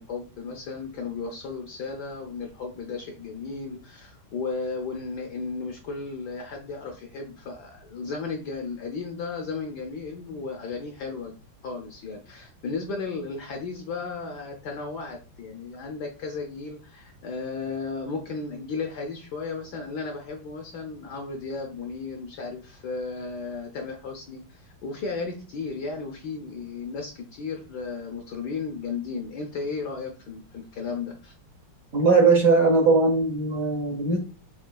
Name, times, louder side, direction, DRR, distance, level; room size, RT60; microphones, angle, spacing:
voice 1, 0.0-11.3 11.6-31.3, left 4 dB, 65° left, 3 dB, 1.1 m, -34 dB
voice 2, 31.9-34.2, right 4 dB, 55° right, 1 dB, 0.9 m, -19 dB
6.4 x 3.6 x 2.3 m, 0.36 s
omnidirectional pair, 2.4 m